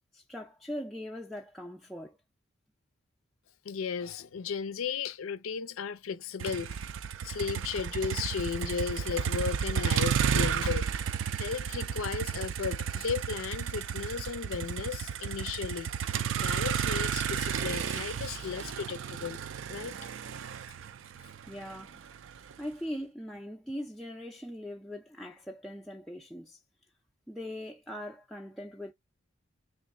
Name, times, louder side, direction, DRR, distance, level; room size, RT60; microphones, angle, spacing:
voice 1, 0.1-2.2 21.5-21.9 22.6-26.6 27.3-28.9, equal, ahead, 0.3 m, -40 dB
voice 2, 3.6-6.9 7.2-10.9 11.4-15.9 16.4-19.4 19.7-20.0, left 6 dB, 85° left, 0.4 m, -35 dB
Motor vehicle (road), 6.4-22.5, right 7 dB, 70° right, 0.4 m, -32 dB
3.3 x 2.5 x 4.1 m
head